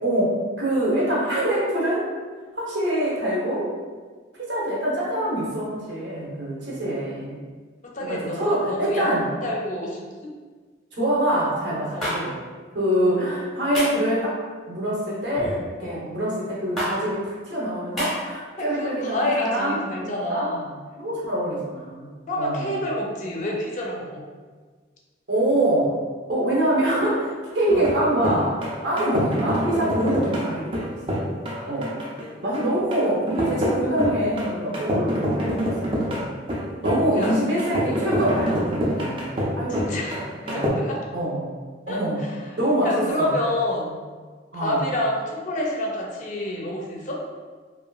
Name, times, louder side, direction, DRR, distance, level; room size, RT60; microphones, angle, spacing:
voice 1, 0.0-2.1 2.6-3.7 4.5-7.4 8.0-9.3 11.0-12.4 12.7-14.4 14.7-15.5 15.8-20.5 21.0-22.1 22.4-22.8 25.3-26.0 26.3-28.6 28.8-31.4 31.6-32.0 32.4-36.3 36.8-39.9 40.1-40.2 40.5-40.7 41.1-41.5 41.9-42.2 42.6-43.3 44.5-44.9, right 1 dB, 65° right, -6 dB, 0.8 m, -25 dB
voice 2, 7.8-9.1 9.4-10.3 11.9-12.2 15.8-16.2 18.6-20.7 22.3-24.2 27.7-27.9 37.2-37.4 39.7-41.0 41.9-44.0 44.5-47.2, left 1 dB, 40° left, -2 dB, 0.4 m, -29 dB
sound 1, 12.0-12.2 13.7-14.0 15.3-15.6 16.8-16.9 18.0-18.1, equal, ahead, 0.8 m, -27 dB
sound 2, 27.7-40.7, equal, 25° right, 0.4 m, -27 dB
2.8 x 2.4 x 2.3 m, 1.5 s
head